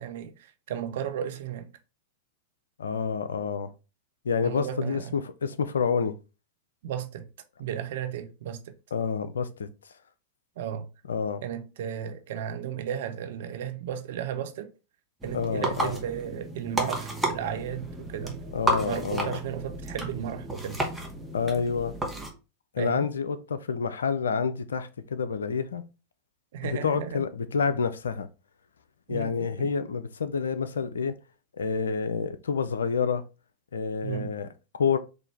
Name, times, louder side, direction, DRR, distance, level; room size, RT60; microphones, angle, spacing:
voice 1, 0.0-1.7 4.4-5.1 6.8-7.3 7.6-8.7 10.6-10.9 11.4-14.7 15.2-18.4 18.8-20.8 22.8-23.1 26.5-27.2 29.1-29.7 34.0-34.3, right 9 dB, 60° right, 0.6 m, -34 dB
voice 2, 2.8-3.7 4.2-6.1 8.9-9.7 11.1-11.4 15.3-16.0 18.5-19.4 21.3-21.9 22.7-25.8 26.6-28.3 29.1-31.1 31.6-33.2 33.7-34.5 34.7-35.0, left 6 dB, 75° left, 0.4 m, -28 dB
sound 1, 15.2-22.3, right 1 dB, 5° right, 1.1 m, -32 dB
4.4 x 2.5 x 3.3 m
figure-of-eight pair, 95°, 0 cm